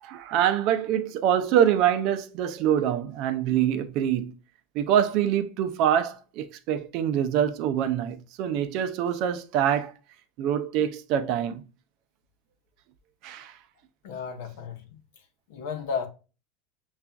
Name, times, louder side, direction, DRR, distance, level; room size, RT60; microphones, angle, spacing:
voice 1, 0.0-4.3 4.7-9.9 10.4-11.6 13.2-13.5, right 9 dB, 45° right, 0.4 m, -25 dB
voice 2, 14.0-16.1, left 6 dB, 75° left, 0.8 m, -34 dB
6.7 x 2.4 x 2.4 m
supercardioid pair, 160°, 0 cm